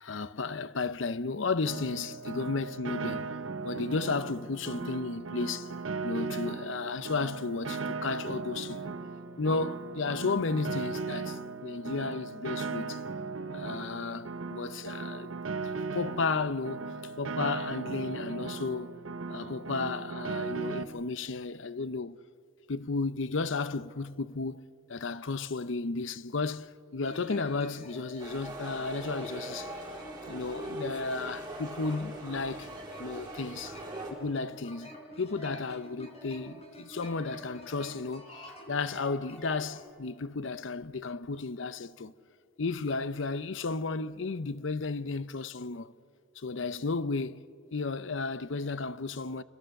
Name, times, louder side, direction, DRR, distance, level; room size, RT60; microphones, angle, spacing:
voice 1, 0.0-3.3 3.6-5.7 6.0-8.9 9.4-13.0 13.5-15.3 15.6-18.9 19.3-22.2 22.7-29.7 30.3-32.7 33.0-33.8 34.1-42.1 42.6-45.9 46.4-47.4 47.7-49.4, left 4 dB, 65° left, 0.7 m, -33 dB
Piano, 1.7-20.8, right 4 dB, 75° right, 1.0 m, -37 dB
sound 1, 27.0-39.9, equal, 30° left, 4.1 m, -47 dB
sound 2, 28.2-34.1, right 2 dB, 20° right, 4.2 m, -42 dB
28.0 x 21.5 x 6.5 m
head